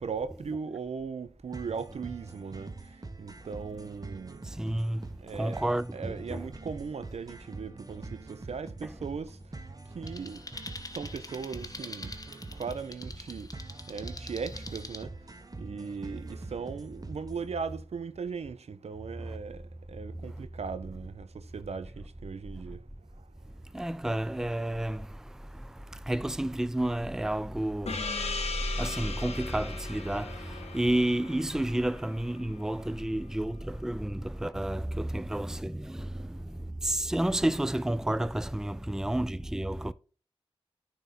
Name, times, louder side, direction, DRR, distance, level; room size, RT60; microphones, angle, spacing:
voice 1, 0.0-2.7 3.2-4.4 5.2-9.4 9.9-10.4 10.9-12.2 12.6-13.5 13.9-15.1 15.6-22.8, right 5 dB, 85° right, 0.5 m, -38 dB
sound 1, 1.5-17.5, right 3 dB, 35° right, 0.9 m, -45 dB
voice 2, 4.4-6.4 23.7-39.9, right 1 dB, 5° right, 0.4 m, -31 dB
sound 2, 10.1-15.0, left 2 dB, 35° left, 0.8 m, -45 dB
Gong, 27.9-32.9, left 4 dB, 80° left, 0.8 m, -38 dB
9.1 x 3.6 x 4.2 m
cardioid pair, 40°, 11 cm